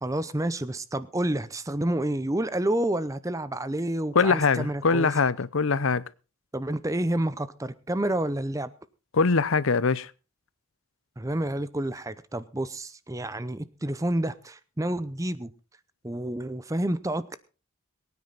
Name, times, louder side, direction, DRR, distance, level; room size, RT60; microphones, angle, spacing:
voice 1, 0.0-5.1 6.5-8.7 11.2-15.5 16.0-17.4, right 1 dB, 15° right, 0.6 m, -29 dB
voice 2, 4.1-6.0 9.1-10.1, left 4 dB, 70° left, 0.7 m, -22 dB
22.5 x 9.6 x 4.0 m
head